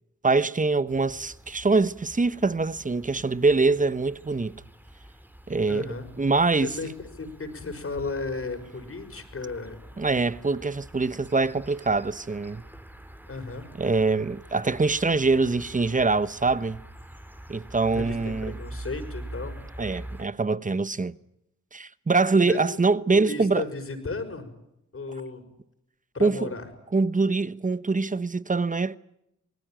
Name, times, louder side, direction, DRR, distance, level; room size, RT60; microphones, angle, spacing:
voice 1, 0.2-4.6 5.5-5.9 6.2-6.7 10.0-12.6 13.8-16.8 17.5-18.5 19.8-21.1 21.7-23.6 26.2-26.4 26.9-29.0, right 3 dB, 25° right, 1.0 m, -24 dB
sound 1, 0.9-20.2, right 1 dB, 5° right, 2.5 m, -45 dB
voice 2, 5.7-6.1 6.6-9.8 13.3-13.7 17.9-19.6 22.4-24.5 24.9-25.5 26.1-26.7, left 3 dB, 45° left, 5.9 m, -34 dB
27.0 x 19.5 x 9.1 m
cardioid pair, 80°, 31 cm